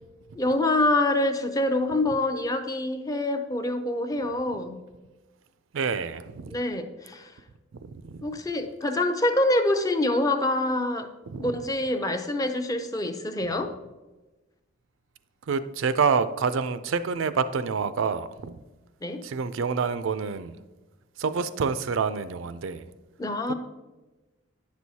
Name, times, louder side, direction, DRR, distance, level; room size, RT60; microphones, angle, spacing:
voice 1, 0.4-4.8 6.5-7.3 8.2-11.1 11.4-13.7 19.0-19.3 23.2-23.5, left 2 dB, 20° left, 0.5 m, -26 dB
voice 2, 5.7-6.5 7.8-8.2 11.3-11.5 15.5-18.6 19.2-20.6 21.2-22.8 23.5-23.6, right 5 dB, 75° right, 0.4 m, -27 dB
9.9 x 6.2 x 2.8 m
head